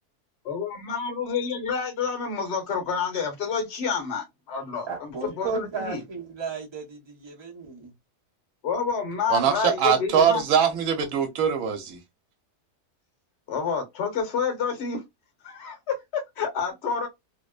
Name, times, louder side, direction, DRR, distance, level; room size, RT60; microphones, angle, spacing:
voice 1, 0.4-6.0 8.6-10.4 13.5-15.0 15.4-17.1, left 6 dB, 50° left, 1.1 m, -29 dB
voice 2, 4.9-7.9, right 4 dB, 25° right, 0.6 m, -34 dB
voice 3, 9.3-12.0, right 8 dB, 70° right, 1.1 m, -22 dB
2.8 x 2.0 x 2.2 m
omnidirectional pair, 1.6 m